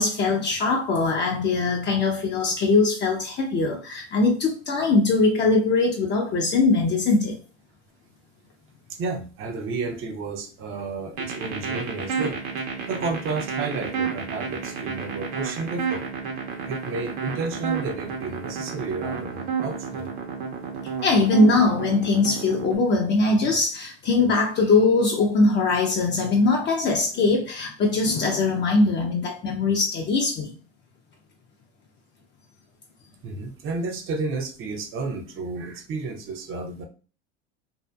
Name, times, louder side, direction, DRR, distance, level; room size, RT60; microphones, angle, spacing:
voice 1, 0.0-7.4 21.0-30.5, left 3 dB, 35° left, 0.6 m, -21 dB
voice 2, 8.9-12.4 12.9-16.1 16.7-20.1 33.2-36.9, right 3 dB, 40° right, 0.7 m, -31 dB
sound 1, 11.2-22.8, right 6 dB, 60° right, 0.9 m, -30 dB
2.7 x 2.4 x 2.3 m
hypercardioid pair, 95°, 33 cm